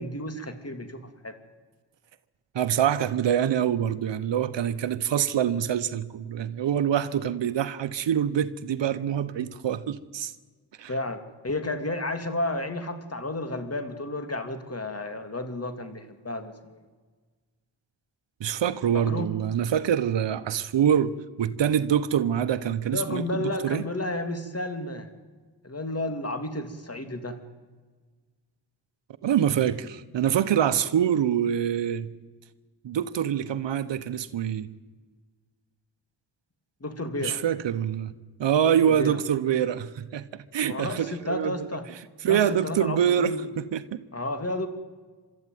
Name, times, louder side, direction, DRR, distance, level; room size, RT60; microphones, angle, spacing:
voice 1, 0.0-1.3 10.9-16.8 18.9-19.3 22.9-25.1 25.6-27.4 36.8-37.4 38.8-39.2 40.7-41.9 42.2-43.4 44.1-44.7, left 1 dB, 35° left, 2.8 m, -32 dB
voice 2, 2.5-10.3 10.8-10.9 18.4-23.8 29.2-32.1 32.8-34.7 37.2-38.1 38.4-41.7 42.2-44.0, right 9 dB, 80° right, 1.0 m, -25 dB
24.0 x 13.5 x 9.3 m
cardioid pair, 45°, 43 cm